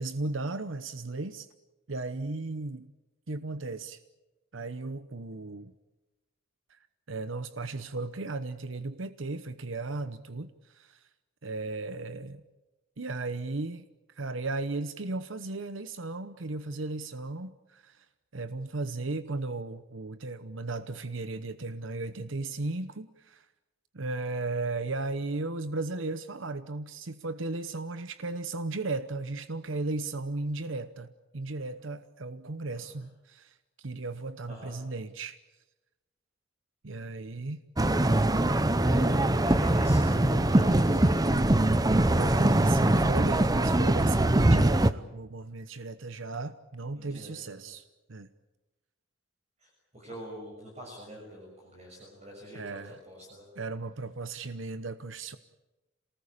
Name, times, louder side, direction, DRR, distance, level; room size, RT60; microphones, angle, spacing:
voice 1, 0.0-1.5 1.9-2.9 3.3-4.0 4.5-5.7 6.7-6.8 7.1-11.1 11.4-12.4 13.0-13.8 14.1-18.1 18.3-23.5 23.9-35.4 36.8-37.6 38.7-39.4 42.1-47.8 48.1-48.3 52.5-53.0 53.6-55.4, right 3 dB, 80° right, 12 dB, 0.9 m, -36 dB
sound 1, 37.8-44.9, right 1 dB, 20° right, 0.8 m, -23 dB
voice 2, 39.4-41.5 46.9-47.6 49.6-52.8 53.0-53.5, equal, 35° right, -1 dB, 6.7 m, -44 dB
27.5 x 19.5 x 8.6 m, 1.1 s
head